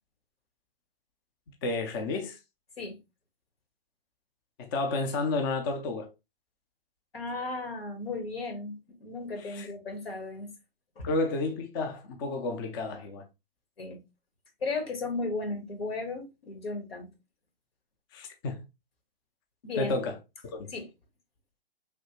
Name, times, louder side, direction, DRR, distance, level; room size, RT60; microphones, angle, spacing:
voice 1, 1.6-2.4 4.6-6.1 9.4-9.7 11.0-13.2 18.1-18.6 19.8-20.2 20.5-20.7, left 3 dB, 25° left, 0.4 m, -31 dB
voice 2, 7.1-10.5 11.0-11.1 13.8-14.0 14.6-17.1 19.6-19.9 20.7-20.9, left 3 dB, 80° left, 1.4 m, -35 dB
3.3 x 2.7 x 2.8 m
hypercardioid pair, 130°, 29 cm